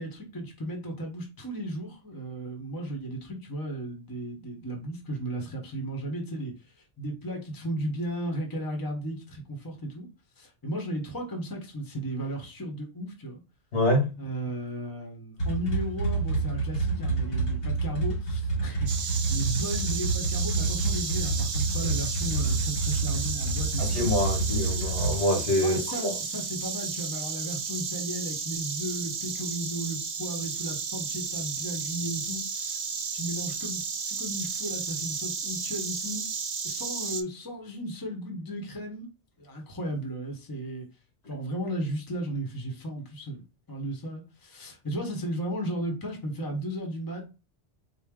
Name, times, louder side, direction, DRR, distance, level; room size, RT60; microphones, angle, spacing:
voice 1, 0.0-6.5 7.0-10.1 10.4-13.4 14.2-24.4 25.6-32.8 33.1-33.8 34.1-36.3 36.6-39.1 39.4-40.9 41.3-43.4 43.7-47.3, right 1 dB, 20° left, 0.9 m, -35 dB
voice 2, 13.7-14.2 23.8-26.1, left 1 dB, 75° left, 1.7 m, -26 dB
sound 1, 15.4-25.2, right 3 dB, 60° left, 1.3 m, -28 dB
Insect, 18.9-37.2, right 5 dB, 75° right, 0.9 m, -33 dB
4.4 x 2.1 x 3.6 m
omnidirectional pair, 1.1 m